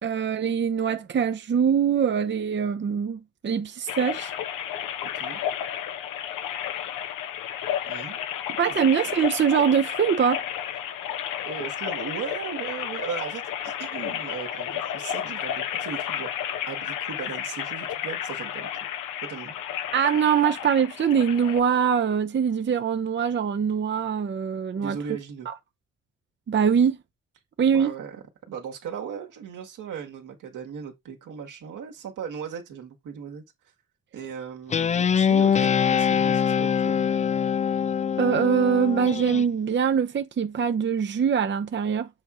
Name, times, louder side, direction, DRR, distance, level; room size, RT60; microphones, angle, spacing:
voice 1, 0.0-4.3 8.6-10.4 19.9-25.0 26.5-27.0 27.6-27.9 38.2-42.1, right 7 dB, 35° right, 0.7 m, -23 dB
sound 1, 3.9-21.6, left 10 dB, 80° left, 0.9 m, -32 dB
voice 2, 7.9-8.2 8.7-8.8 11.4-16.3 16.7-18.8 19.2-19.5 24.7-25.5 27.7-33.4 34.1-37.1, right 7 dB, 75° right, 1.8 m, -37 dB
Guitar, 34.7-39.5, left 7 dB, 25° left, 0.3 m, -23 dB
7.5 x 3.6 x 4.4 m
hypercardioid pair, 45°, 32 cm